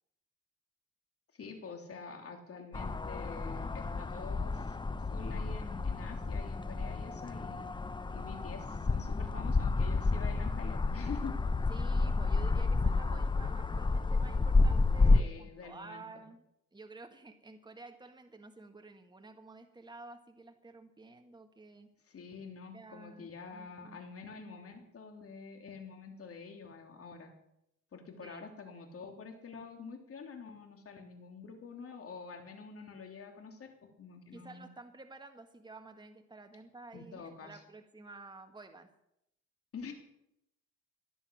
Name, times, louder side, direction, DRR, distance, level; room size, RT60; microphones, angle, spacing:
voice 1, 1.3-7.7 8.1-11.4 15.1-16.1 22.0-27.3 27.9-33.7 34.0-34.7 36.9-37.6 39.7-39.9, left 5 dB, 50° left, 4 dB, 3.4 m, -47 dB
sound 1, 2.7-15.2, left 3 dB, 15° left, 0.6 m, -30 dB
voice 2, 11.7-16.4 16.7-21.9 22.7-24.0 28.2-28.5 34.3-38.9, right 3 dB, 15° right, 5 dB, 1.7 m, -51 dB
18.0 x 11.5 x 6.5 m, 0.81 s
cardioid pair, 90°, 30 cm